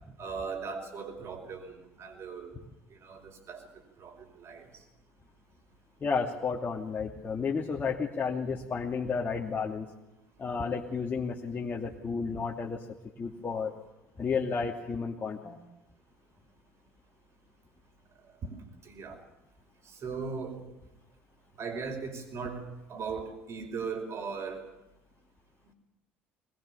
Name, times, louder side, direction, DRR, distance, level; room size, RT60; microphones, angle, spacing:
voice 1, 0.2-2.5 2.9-3.7 4.0-4.8 18.4-19.2 19.9-20.6 21.6-24.7 25.7-25.8, right 5 dB, 45° right, 6 dB, 5.4 m, -39 dB
voice 2, 6.0-9.9 10.4-12.9 13.2-13.7 14.2-15.6, left 5 dB, 30° left, -2 dB, 2.7 m, -32 dB
22.5 x 20.5 x 7.1 m, 0.93 s
figure-of-eight pair, 60°, 6 cm